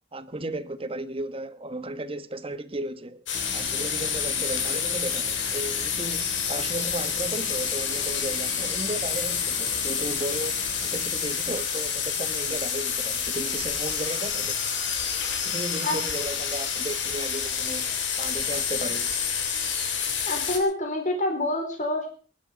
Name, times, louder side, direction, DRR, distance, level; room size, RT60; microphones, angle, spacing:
voice 1, 0.1-3.2 3.5-10.6 10.8-14.5 15.4-19.1, right 2 dB, 30° right, 1.2 m, -35 dB
sound 1, 3.3-20.6, left 7 dB, 90° left, 3.4 m, -28 dB
sound 2, 3.3-11.0, right 1 dB, 15° right, 2.1 m, -45 dB
voice 2, 20.3-22.1, left 1 dB, 40° left, 4.2 m, -27 dB
23.0 x 11.0 x 5.1 m
head